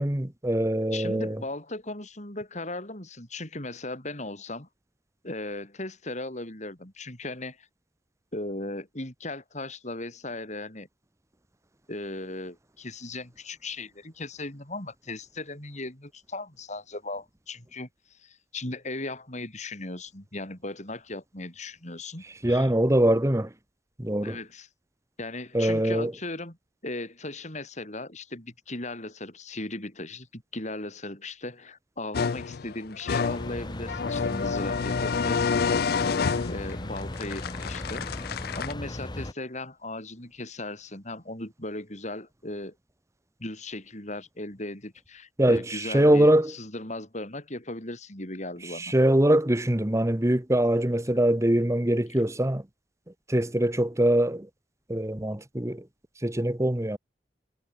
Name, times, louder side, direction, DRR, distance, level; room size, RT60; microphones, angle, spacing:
voice 1, 0.0-1.4 22.4-23.5 24.0-24.4 25.5-26.1 45.4-46.5 48.7-52.6 53.3-54.5 54.9-55.8 56.2-57.0, right 1 dB, 15° right, 1.2 m, -23 dB
voice 2, 0.9-4.7 5.2-7.7 8.3-10.9 11.9-22.7 24.2-24.7 25.2-26.6 26.8-38.1 38.6-42.7 43.4-48.9, left 2 dB, 40° left, 5.9 m, -37 dB
sound 1, 32.1-38.7, left 5 dB, 60° left, 0.4 m, -29 dB
sound 2, 33.2-39.3, left 1 dB, 25° left, 1.1 m, -37 dB
head